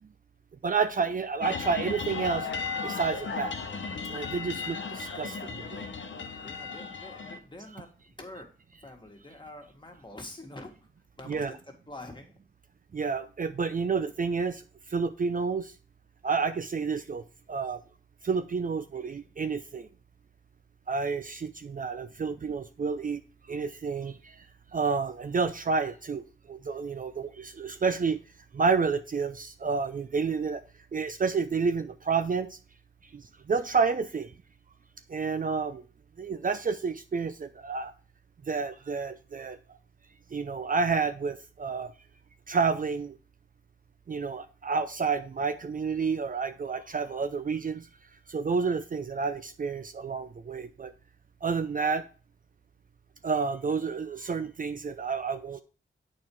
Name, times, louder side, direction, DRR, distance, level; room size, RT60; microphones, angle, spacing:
voice 1, 0.6-2.5 2.8-3.6 4.1-5.8 11.3-11.5 12.9-14.6 14.9-15.7 16.2-17.2 17.5-17.8 18.2-19.9 20.9-23.2 23.5-24.5 24.7-28.2 28.5-30.6 30.9-32.6 33.1-34.3 35.1-35.8 36.2-37.9 38.5-39.6 40.3-41.9 42.5-43.2 44.1-47.9 48.3-50.9 51.4-52.0 53.2-55.6, right 5 dB, 45° right, 10 dB, 0.5 m, -30 dB
sound 1, 1.4-7.4, left 5 dB, 70° left, 1.0 m, -35 dB
voice 2, 6.4-7.9 8.2-8.5 8.8-10.7 11.2-11.5 11.9-12.3, left 1 dB, 25° left, 2 dB, 1.8 m, -45 dB
7.7 x 4.4 x 4.6 m, 0.37 s
cardioid pair, 70°, 20 cm